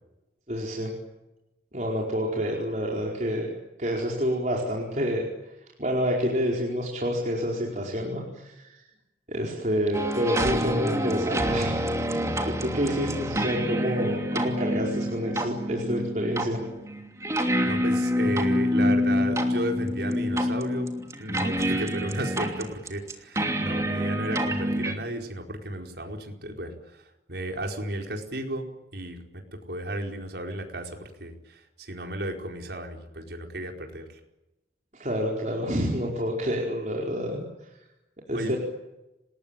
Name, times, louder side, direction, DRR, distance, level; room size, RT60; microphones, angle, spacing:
voice 1, 0.5-0.9 1.7-3.5 3.8-5.3 5.8-8.8 9.3-11.8 12.1-16.6 34.9-37.4 38.3-38.6, equal, 45° right, -2 dB, 4.8 m, -28 dB
sound 1, 9.9-24.9, equal, 15° right, 2.9 m, -27 dB
voice 2, 17.7-20.9 21.2-28.7 28.9-34.2 38.3-38.6, right 1 dB, 70° right, 2 dB, 4.9 m, -34 dB
28.5 x 20.0 x 9.0 m, 0.96 s
head